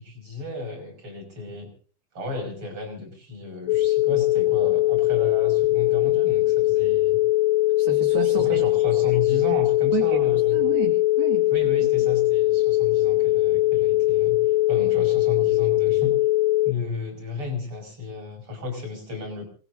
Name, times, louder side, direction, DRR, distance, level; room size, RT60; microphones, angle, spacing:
voice 1, 0.0-1.7 2.1-7.2 8.2-10.6 11.5-16.2 16.6-19.5, left 3 dB, 30° right, 2 dB, 6.4 m, -33 dB
sound 1, 3.7-16.7, left 17 dB, 70° left, 2.4 m, -21 dB
voice 2, 7.8-8.6 9.9-11.5 11.8-11.9, right 8 dB, 60° right, 3 dB, 3.3 m, -31 dB
27.5 x 19.5 x 2.7 m, 0.39 s
omnidirectional pair, 4.9 m